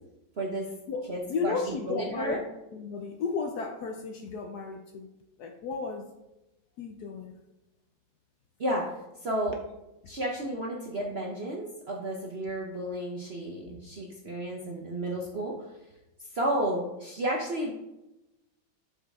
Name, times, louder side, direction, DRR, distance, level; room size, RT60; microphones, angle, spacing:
voice 1, 0.4-0.7 1.1-2.4 8.6-8.9 9.2-9.5 10.1-15.7 16.2-17.7, right 1 dB, 50° right, -1 dB, 0.7 m, -32 dB
voice 2, 0.9-2.4 2.7-5.1 5.4-6.1 6.8-7.3, left 4 dB, 70° left, 5 dB, 1.0 m, -34 dB
7.4 x 5.6 x 3.5 m, 0.96 s
omnidirectional pair, 2.1 m